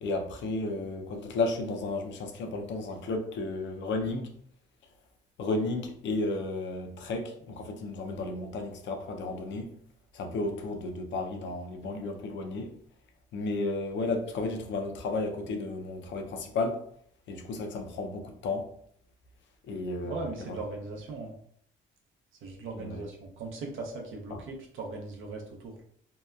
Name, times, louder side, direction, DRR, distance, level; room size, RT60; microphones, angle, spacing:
voice 1, 0.0-4.3 5.4-9.7 10.1-12.7 13.3-16.8 17.3-18.7 19.7-20.6 22.8-23.0 24.3-24.4, left 2 dB, 65° left, 0.5 m, -33 dB
voice 2, 20.0-21.3 22.4-25.8, right 3 dB, 80° right, 0.6 m, -39 dB
2.7 x 2.2 x 2.3 m
cardioid pair, 90°, 20 cm